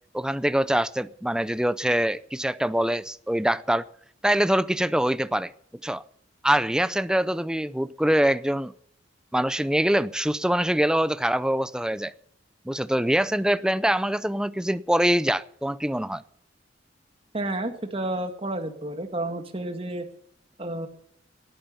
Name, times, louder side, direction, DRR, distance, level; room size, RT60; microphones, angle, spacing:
voice 1, 0.1-3.9 4.2-5.5 5.8-6.0 6.4-8.7 9.3-12.1 12.7-16.2, right 1 dB, 5° right, 0.5 m, -24 dB
voice 2, 17.3-20.1 20.6-20.9, right 1 dB, 30° right, 1.9 m, -30 dB
17.5 x 9.1 x 6.9 m
head